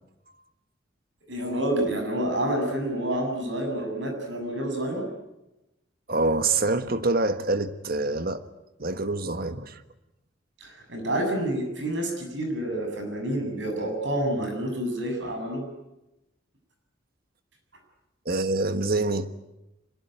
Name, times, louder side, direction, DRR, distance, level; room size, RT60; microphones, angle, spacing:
voice 1, 1.3-5.1 10.6-15.7, right 1 dB, 65° right, 7.5 m, -28 dB
voice 2, 6.1-8.4 8.8-9.8 18.2-19.3, right 2 dB, 50° right, 1.4 m, -26 dB
24.0 x 21.5 x 9.3 m
head